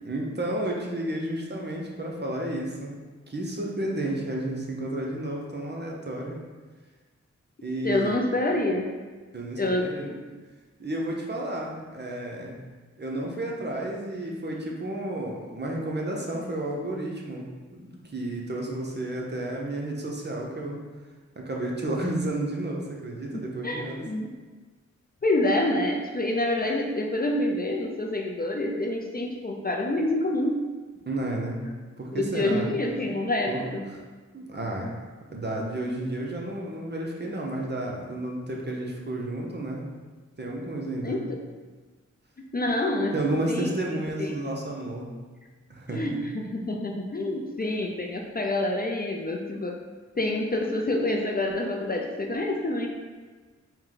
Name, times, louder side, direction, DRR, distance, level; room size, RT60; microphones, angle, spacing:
voice 1, 0.0-2.9 3.3-6.4 7.6-8.2 9.3-10.1 10.8-12.6 13.0-17.5 17.8-20.8 21.4-24.0 31.1-31.6 32.0-32.7 33.0-33.1 33.5-33.6 33.9-34.0 34.3-34.9 35.3-39.8 40.4-41.2 43.1-45.1 45.7-46.2, right 1 dB, 35° right, -1 dB, 0.8 m, -31 dB
voice 2, 7.8-9.0 9.6-10.2 23.6-24.3 25.2-30.6 32.1-33.9 41.0-41.4 42.5-43.1 43.5-43.8 44.2-44.3 45.9-49.8 50.2-52.9, left 1 dB, 30° left, 1 dB, 0.4 m, -27 dB
4.4 x 2.2 x 3.9 m, 1.3 s
cardioid pair, 45°, 30 cm